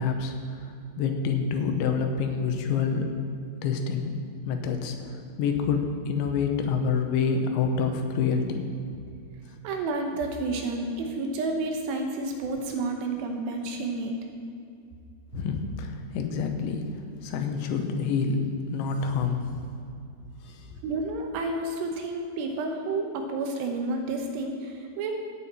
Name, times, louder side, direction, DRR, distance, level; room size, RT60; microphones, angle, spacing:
voice 1, 0.0-3.1 3.6-4.2 4.5-8.7 15.3-16.9 17.2-19.6 20.4-20.7, left 5 dB, 85° left, 5 dB, 3.3 m, -27 dB
voice 2, 9.6-14.1 20.8-25.2, right 2 dB, 75° right, 3 dB, 2.9 m, -30 dB
15.0 x 9.4 x 4.3 m, 2.5 s
omnidirectional pair, 5.2 m